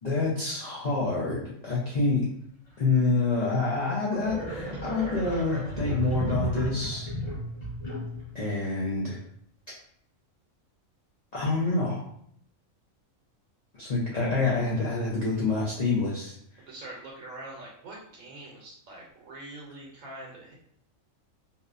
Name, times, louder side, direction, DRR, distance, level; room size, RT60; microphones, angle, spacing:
voice 1, 0.0-2.3 2.8-7.1 8.3-9.2 11.3-12.0 13.8-16.3, left 3 dB, 85° left, -6 dB, 0.3 m, -27 dB
sound 1, 3.4-3.5 4.1-8.3, equal, 35° left, 0.9 m, -34 dB
voice 2, 16.7-20.5, right 2 dB, 75° right, -3 dB, 1.0 m, -44 dB
2.7 x 2.1 x 2.4 m, 0.68 s
omnidirectional pair, 1.4 m